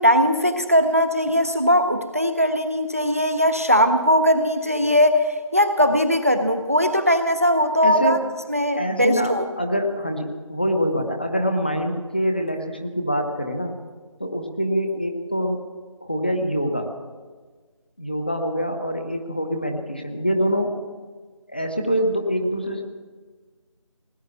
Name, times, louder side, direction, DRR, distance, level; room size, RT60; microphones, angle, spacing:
voice 1, 0.0-8.2 8.5-9.4, equal, 25° right, 9 dB, 0.5 m, -19 dB
voice 2, 7.8-8.2 8.8-13.7 14.2-15.6 16.0-16.9 18.0-20.8 21.5-22.8, equal, 20° left, 4 dB, 0.6 m, -25 dB
18.0 x 9.5 x 7.0 m, 1.4 s
figure-of-eight pair, 170°, 17 cm